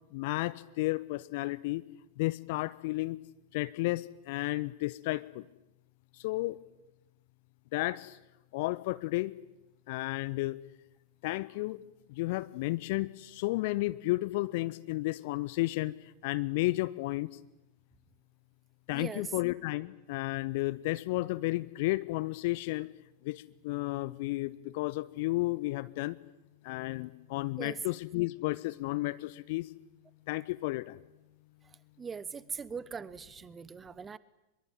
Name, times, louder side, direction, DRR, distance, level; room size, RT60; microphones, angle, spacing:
voice 1, 0.1-1.8 2.2-3.2 3.5-5.4 6.2-6.6 7.7-8.2 8.5-9.4 9.9-10.6 11.2-11.8 12.1-15.9 16.2-17.3 18.9-22.9 23.2-26.2 26.6-29.7 30.3-31.0, left 20 dB, 50° left, 17 dB, 1.1 m, -32 dB
voice 2, 18.9-19.3 27.6-27.8 32.0-34.2, right 6 dB, 20° right, 19 dB, 0.9 m, -41 dB
24.0 x 22.5 x 9.1 m, 0.94 s
figure-of-eight pair, 90°, 0 cm